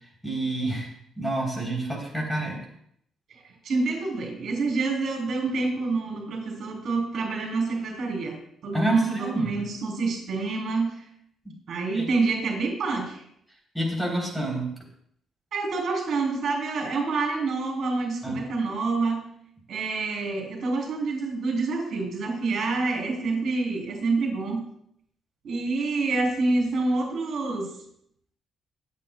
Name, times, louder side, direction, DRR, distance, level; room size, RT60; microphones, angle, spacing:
voice 1, 0.2-2.6 8.7-9.6 11.4-11.5 11.9-12.1 13.7-14.7 18.2-18.4, right 2 dB, 5° left, 0 dB, 3.5 m, -28 dB
voice 2, 3.3-8.4 8.6-11.0 11.7-13.2 15.5-19.2 19.7-24.6 25.4-27.7, right 3 dB, 65° right, 1 dB, 3.5 m, -27 dB
22.5 x 8.3 x 2.3 m, 0.70 s
cardioid pair, 90°, 0 cm